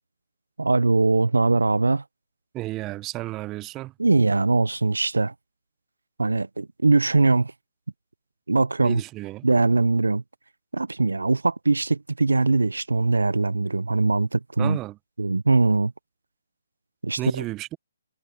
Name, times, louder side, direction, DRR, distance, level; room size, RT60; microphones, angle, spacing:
voice 1, 0.6-2.0 4.0-5.3 6.2-7.5 8.5-9.0 9.4-10.2 10.7-14.8 15.2-15.9 17.0-17.2, right 3 dB, 85° right, 0.6 m, -21 dB
voice 2, 2.5-3.9 8.8-9.5 14.6-15.0 17.2-17.8, right 17 dB, 20° right, 1.0 m, -32 dB
figure-of-eight pair, 145°, 0 cm